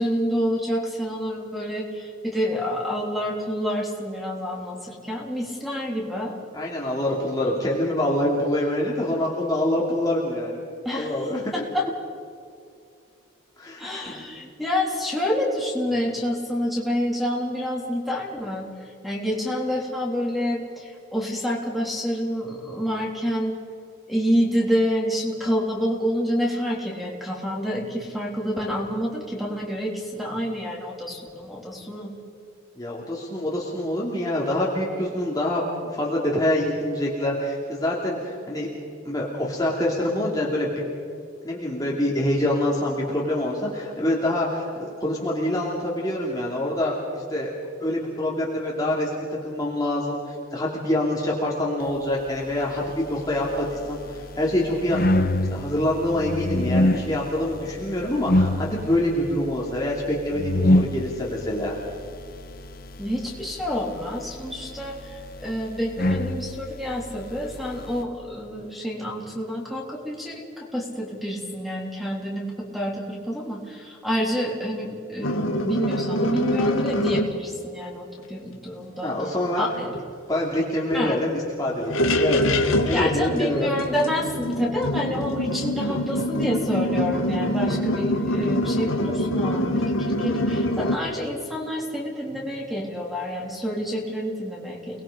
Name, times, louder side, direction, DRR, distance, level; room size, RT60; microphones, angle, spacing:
voice 1, 0.0-6.4 10.9-11.1 11.5-11.8 13.8-23.6 24.1-32.1 63.0-79.1 79.6-80.0 80.9-81.2 82.9-95.0, equal, ahead, -2 dB, 3.4 m, -28 dB
voice 2, 6.5-10.6 10.9-11.5 13.6-14.2 32.8-38.7 39.1-40.7 41.4-47.5 47.8-49.1 49.4-61.8 79.0-79.7 80.3-83.7, left 1 dB, 20° left, -4 dB, 2.8 m, -26 dB
sound 1, 52.6-68.0, left 1 dB, 45° left, 1.0 m, -27 dB
sound 2, 75.2-77.3 79.9-80.0 80.4-80.5 80.9-81.0 81.7-91.0, left 1 dB, 80° left, 1.9 m, -25 dB
30.0 x 20.5 x 5.1 m, 2.4 s
head